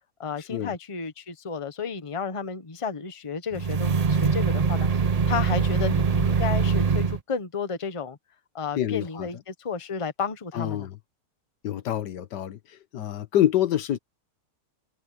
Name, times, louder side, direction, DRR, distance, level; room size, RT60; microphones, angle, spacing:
voice 1, 0.2-8.2 8.5-10.9, left 5 dB, 20° left, 1.0 m, -32 dB
sound 1, 3.5-7.2, right 5 dB, 60° right, 0.4 m, -23 dB
voice 2, 8.7-9.3 10.5-10.9 11.6-12.6 12.9-14.0, left 11 dB, 80° left, 1.6 m, -26 dB
omnidirectional pair, 1.8 m